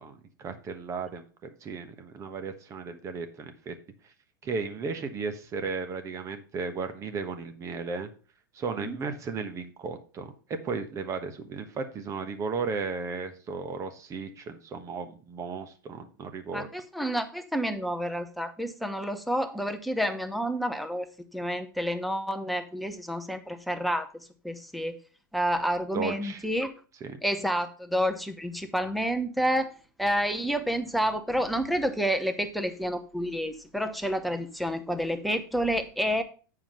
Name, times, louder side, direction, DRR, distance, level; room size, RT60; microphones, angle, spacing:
voice 1, 0.0-3.7 4.4-8.1 8.5-10.3 10.6-16.7 25.9-26.4 27.0-27.2, right 4 dB, 30° right, 8 dB, 1.3 m, -35 dB
voice 2, 16.5-21.1 21.3-24.1 24.4-25.0 25.3-26.7 27.2-29.7 30.0-36.2, equal, ahead, 6 dB, 1.0 m, -29 dB
8.9 x 4.9 x 5.5 m, 0.37 s
figure-of-eight pair, 90°, 11 cm